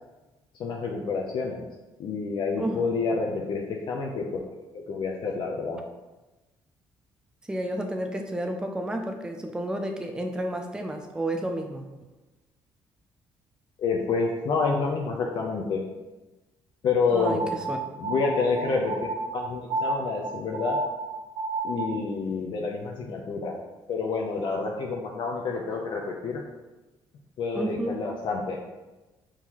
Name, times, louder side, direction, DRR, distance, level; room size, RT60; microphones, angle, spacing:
voice 1, 0.6-1.6 2.0-4.4 4.7-5.8 13.8-15.8 16.8-17.5 18.0-20.8 21.6-23.6 23.9-26.4 27.4-28.6, left 4 dB, 60° left, -1 dB, 0.6 m, -28 dB
voice 2, 2.6-2.9 7.5-11.9 17.1-17.8 27.5-28.0, right 1 dB, 10° right, 3 dB, 0.4 m, -31 dB
sound 1, 17.2-22.1, right 2 dB, 75° right, 0.4 m, -31 dB
4.5 x 3.7 x 2.9 m, 1.1 s
cardioid pair, 90°, 9 cm